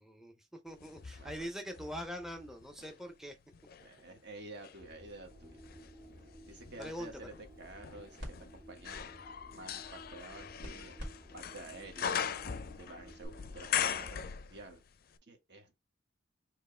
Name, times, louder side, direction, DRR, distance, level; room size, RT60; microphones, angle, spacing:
voice 1, 0.0-3.4 6.8-7.3, equal, ahead, 0.5 m, -43 dB
sound 1, 0.8-3.0 3.5-14.9 15.1-15.2, left 8 dB, 50° left, 0.4 m, -41 dB
voice 2, 1.2-1.5 3.8-5.6 6.5-8.2 8.5-9.1 9.5-10.9 11.3-12.2 12.8-14.8 15.3-15.8, right 2 dB, 60° right, 1.3 m, -50 dB
sound 2, 4.7-14.1, equal, 25° right, 1.9 m, -55 dB
sound 3, 7.3-13.3, equal, 85° right, 2.3 m, -53 dB
4.4 x 3.0 x 3.1 m
head